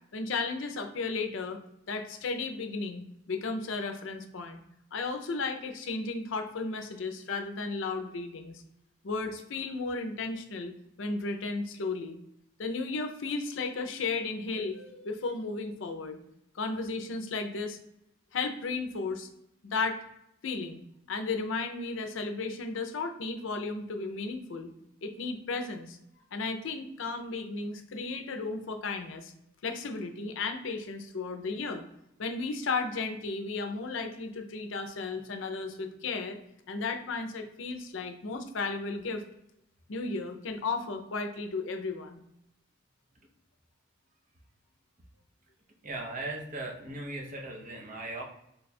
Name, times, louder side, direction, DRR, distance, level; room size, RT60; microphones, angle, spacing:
voice 1, 0.1-1.6 1.9-4.6 4.9-8.6 9.0-10.7 11.0-12.2 12.6-16.2 16.5-17.8 18.3-19.3 19.6-20.0 20.4-20.8 21.1-24.7 25.0-26.0 26.3-29.3 29.6-31.8 32.2-36.4 36.7-39.2 39.9-42.2, left 3 dB, 70° left, 6 dB, 0.5 m, -34 dB
voice 2, 45.8-48.2, right 2 dB, 40° right, 0 dB, 0.7 m, -38 dB
3.3 x 2.3 x 4.1 m, 0.80 s
head